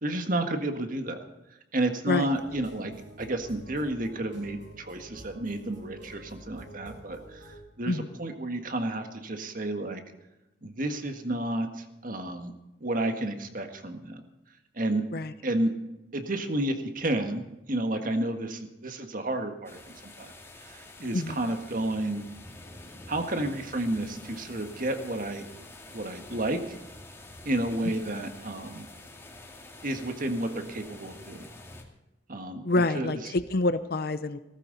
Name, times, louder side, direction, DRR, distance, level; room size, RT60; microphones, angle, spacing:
voice 1, 0.0-1.2 1.7-2.9 3.2-10.0 10.6-12.5 12.8-14.2 14.7-15.0 15.4-15.7 16.1-20.3 20.6-22.2 23.1-25.4 25.9-26.8 27.4-28.9 29.8-31.5 32.3-32.6 32.9-33.3, right 1 dB, 50° right, 6 dB, 1.7 m, -31 dB
sound 1, 2.3-7.6, right 1 dB, 90° right, 7.0 m, -48 dB
sound 2, 19.6-31.8, left 2 dB, 15° left, 2.2 m, -47 dB
voice 2, 32.6-34.4, left 2 dB, 60° left, 12 dB, 0.7 m, -27 dB
17.5 x 14.5 x 4.1 m, 0.96 s
head